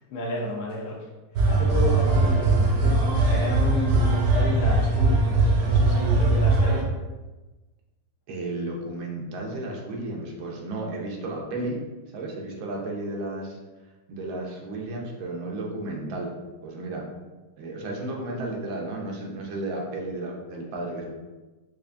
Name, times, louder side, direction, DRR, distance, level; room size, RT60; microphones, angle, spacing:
voice 1, 0.1-1.1 1.5-6.9, left 1 dB, 70° left, -2 dB, 0.9 m, -31 dB
sound 1, 1.3-6.8, right 2 dB, 70° right, 0.9 m, -21 dB
voice 2, 8.3-11.8 12.1-13.6 14.1-17.1 17.6-21.1, right 2 dB, 90° right, -1 dB, 1.5 m, -33 dB
4.6 x 2.5 x 2.5 m, 1.2 s
omnidirectional pair, 2.1 m